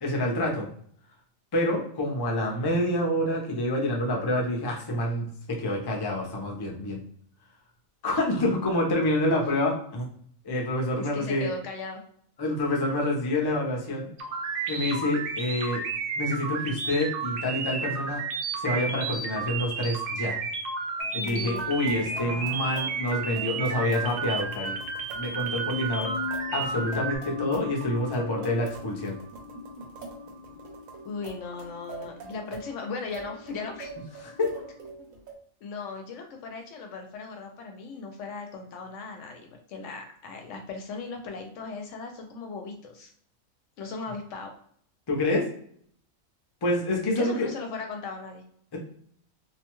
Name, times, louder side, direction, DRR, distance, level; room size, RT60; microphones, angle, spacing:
voice 1, 0.0-0.7 1.5-7.0 8.0-10.1 10.4-11.5 12.4-14.1 14.7-15.8 16.2-18.2 18.6-20.4 21.1-24.8 25.1-29.1 34.2-34.5 45.1-45.4 46.6-47.5 48.7-48.8, left 1 dB, 30° left, -1 dB, 0.5 m, -27 dB
voice 2, 10.9-12.0 21.2-22.7 31.0-33.9 35.6-43.1 43.8-44.5 47.1-48.4, left 4 dB, 70° left, 3 dB, 0.9 m, -38 dB
sound 1, 14.2-27.2, right 5 dB, 65° right, 0.6 m, -32 dB
sound 2, 21.0-35.3, right 3 dB, 90° right, 1.1 m, -45 dB
sound 3, 22.5-34.7, left 6 dB, 90° left, 0.3 m, -41 dB
2.6 x 2.2 x 2.9 m, 0.62 s
omnidirectional pair, 1.4 m